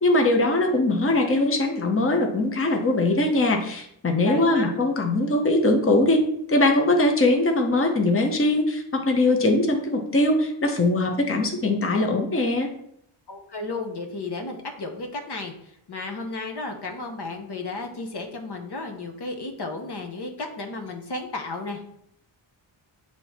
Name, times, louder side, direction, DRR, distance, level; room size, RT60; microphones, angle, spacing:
voice 1, 0.0-6.2 6.5-12.7, left 2 dB, 25° left, 3 dB, 1.0 m, -21 dB
voice 2, 4.3-4.8 13.3-21.9, left 2 dB, 50° left, 4 dB, 1.1 m, -33 dB
7.6 x 3.0 x 4.3 m, 0.71 s
cardioid pair, 80°, 49 cm